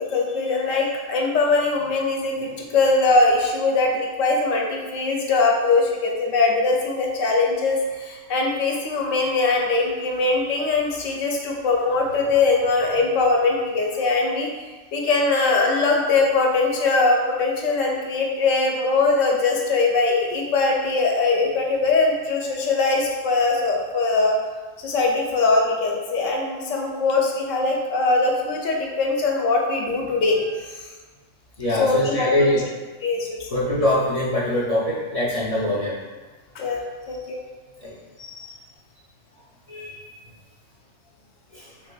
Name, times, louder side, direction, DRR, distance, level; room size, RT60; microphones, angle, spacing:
voice 1, 0.0-14.5 14.9-24.4 24.8-30.9 31.7-32.6 33.0-33.6 36.5-37.4, left 3 dB, 80° left, 0 dB, 1.0 m, -21 dB
voice 2, 31.6-32.6 33.5-36.0 37.8-38.5 39.7-40.0 41.5-41.7, left 1 dB, 55° left, -8 dB, 0.4 m, -23 dB
3.4 x 3.2 x 2.2 m, 1.3 s
omnidirectional pair, 1.3 m